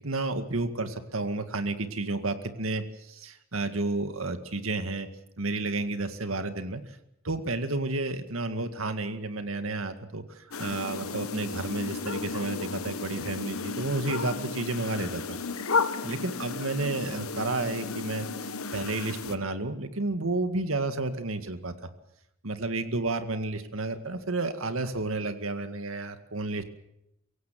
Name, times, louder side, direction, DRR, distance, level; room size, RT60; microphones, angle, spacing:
voice 1, 0.0-5.1 5.4-6.8 7.2-15.4 16.0-21.8 22.4-26.6, right 2 dB, 75° right, 8 dB, 2.0 m, -31 dB
sound 1, 10.5-19.3, left 4 dB, 85° left, 1.3 m, -33 dB
23.5 x 17.0 x 7.6 m, 0.81 s
head